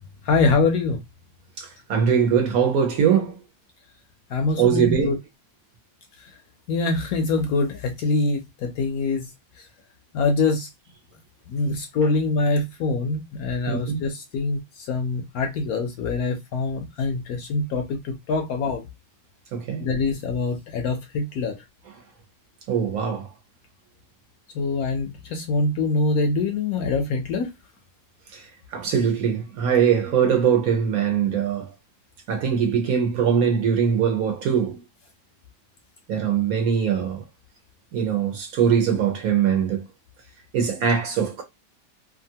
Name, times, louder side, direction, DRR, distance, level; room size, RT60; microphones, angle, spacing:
voice 1, 0.2-1.0 4.3-5.2 6.7-9.3 10.1-10.7 11.5-18.8 19.8-21.6 24.5-27.5, left 3 dB, 70° left, 0.9 m, -24 dB
voice 2, 1.6-3.4 4.6-5.1 13.7-14.0 19.5-19.9 22.7-23.3 28.3-28.4 28.7-31.7 32.3-34.8 36.1-37.2 37.9-39.8 40.5-41.4, right 7 dB, 65° right, 1.0 m, -22 dB
2.9 x 2.4 x 2.7 m
omnidirectional pair, 1.9 m